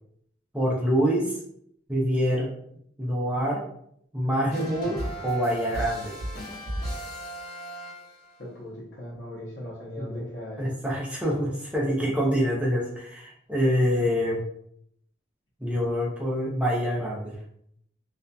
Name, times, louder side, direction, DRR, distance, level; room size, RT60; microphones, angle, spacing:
voice 1, 0.5-1.4 1.9-2.5 3.0-3.6 4.1-5.0 5.2-6.2 10.0-10.2 10.6-14.4 15.6-17.3, equal, 5° right, -4 dB, 0.6 m, -26 dB
sound 1, 4.5-8.4, right 1 dB, 50° left, 1.2 m, -35 dB
voice 2, 8.4-10.6, left 1 dB, 75° left, -7 dB, 0.8 m, -39 dB
2.7 x 2.4 x 2.2 m, 0.71 s
head